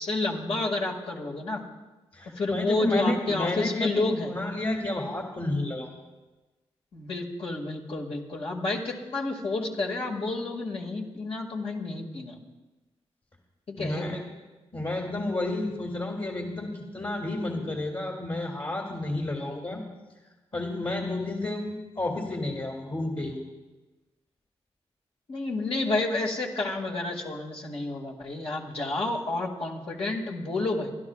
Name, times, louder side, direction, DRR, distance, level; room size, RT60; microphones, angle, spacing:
voice 1, 0.0-1.6 2.3-4.3 6.9-12.4 13.7-14.2 25.3-30.9, left 2 dB, 65° left, -2 dB, 2.0 m, -30 dB
voice 2, 2.1-5.9 13.8-14.2 14.7-19.8 20.5-23.4, left 2 dB, 45° left, -1 dB, 2.2 m, -31 dB
28.0 x 12.0 x 2.4 m, 1.2 s
cardioid pair, 50°, 11 cm